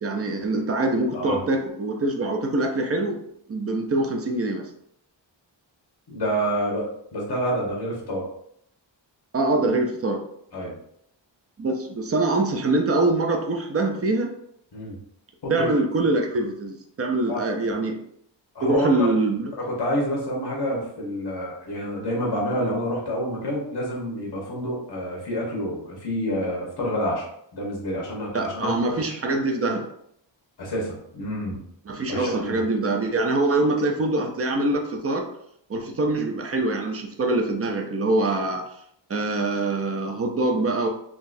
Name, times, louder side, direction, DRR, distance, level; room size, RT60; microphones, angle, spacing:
voice 1, 0.0-3.2 3.5-4.7 9.3-10.2 11.6-14.3 15.5-18.0 18.6-19.5 28.3-29.9 31.9-35.3 35.7-38.6 39.1-40.9, right 2 dB, 35° right, 3 dB, 0.4 m, -24 dB
voice 2, 6.1-8.2 10.5-10.8 14.7-15.0 15.4-15.7 17.3-17.4 18.5-19.1 19.6-27.2 27.5-29.2 30.6-31.6 32.1-32.5, equal, 60° left, -3 dB, 1.2 m, -28 dB
3.8 x 2.3 x 2.5 m, 0.72 s
wide cardioid pair, 150°, 45 cm